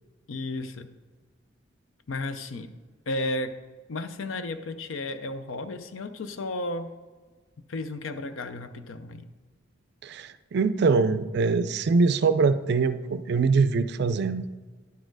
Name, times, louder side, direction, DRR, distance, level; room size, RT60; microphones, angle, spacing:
voice 1, 0.3-0.9 2.1-2.7 3.1-3.5 3.9-6.9 7.7-9.3, left 2 dB, 80° left, 10 dB, 0.6 m, -33 dB
voice 2, 10.0-14.4, right 4 dB, 55° right, 12 dB, 0.4 m, -23 dB
10.5 x 4.4 x 4.6 m, 1.4 s
head